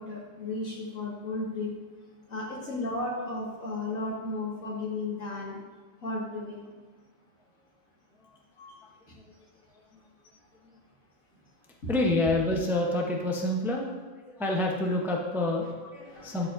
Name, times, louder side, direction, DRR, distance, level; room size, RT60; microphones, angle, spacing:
voice 1, 0.0-1.7 2.3-5.6 6.0-6.6 8.6-8.7 9.1-9.2 11.8-11.9 16.0-16.5, left 2 dB, 75° left, -5 dB, 2.3 m, -34 dB
voice 2, 11.9-14.1 14.4-16.5, left 2 dB, ahead, 0 dB, 0.5 m, -27 dB
12.0 x 4.8 x 2.6 m, 1.4 s
omnidirectional pair, 1.4 m